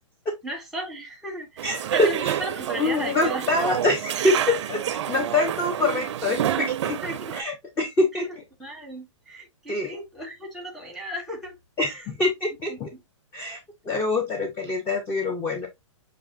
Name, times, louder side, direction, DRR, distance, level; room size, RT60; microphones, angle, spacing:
voice 1, 0.4-1.7 1.9-3.4 7.0-7.3 8.3-8.4 8.6-12.0 12.7-12.8, right 1 dB, ahead, 1.1 m, -35 dB
voice 2, 1.6-2.4 2.8-4.8 5.1-7.0 7.3-8.3 9.7-10.0 11.8-12.9 13.3-13.6 13.9-15.7, left 2 dB, 15° left, 0.5 m, -25 dB
sound 1, 1.6-7.4, right 11 dB, 60° right, 0.4 m, -28 dB
5.8 x 2.5 x 2.5 m
hypercardioid pair, 135°, 16 cm